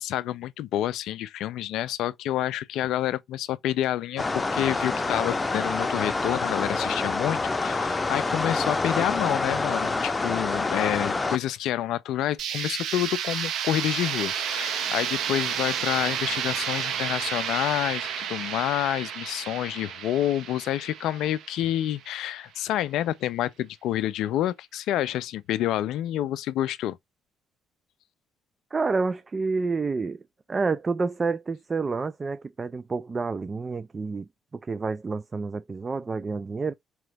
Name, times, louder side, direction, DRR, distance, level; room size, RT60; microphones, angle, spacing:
voice 1, 0.0-27.0, left 12 dB, 75° left, 0.4 m, -28 dB
sound 1, 4.2-11.4, left 3 dB, 25° left, 0.6 m, -27 dB
sound 2, 12.4-22.2, right 8 dB, 70° right, 0.8 m, -31 dB
voice 2, 28.7-30.2 30.5-36.7, right 4 dB, 35° right, 0.4 m, -29 dB
3.6 x 3.1 x 3.3 m
hypercardioid pair, 55°, 0 cm